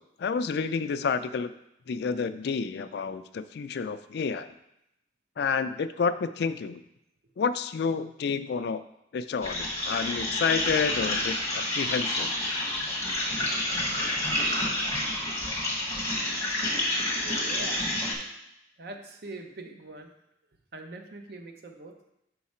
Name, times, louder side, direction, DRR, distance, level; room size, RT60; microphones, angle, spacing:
voice 1, 0.2-1.5 1.9-4.5 5.4-6.8 7.4-8.8 9.1-12.3, left 5 dB, 60° left, 11 dB, 0.3 m, -29 dB
sound 1, 9.4-18.1, left 1 dB, 15° left, 1.2 m, -29 dB
voice 2, 17.2-17.9 18.8-20.1 20.7-22.1, right 2 dB, 60° right, 4 dB, 0.7 m, -42 dB
5.6 x 4.7 x 4.2 m, 0.83 s
head